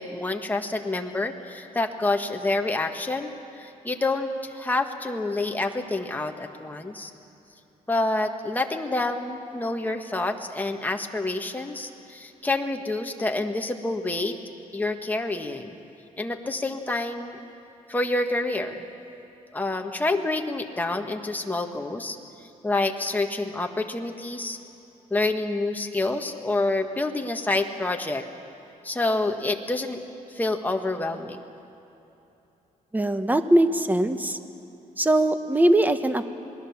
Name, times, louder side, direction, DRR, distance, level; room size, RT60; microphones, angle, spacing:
voice 1, 0.0-7.1 7.9-14.4 14.7-15.8 16.2-17.4 17.9-18.8 19.5-22.2 22.6-24.6 25.1-28.3 28.8-30.0 30.3-31.4, left 2 dB, 10° left, 4 dB, 1.6 m, -28 dB
voice 2, 32.9-34.4 35.0-36.3, right 1 dB, 10° right, 9 dB, 1.1 m, -21 dB
27.5 x 20.0 x 7.2 m, 2.9 s
cardioid pair, 115°, 14 cm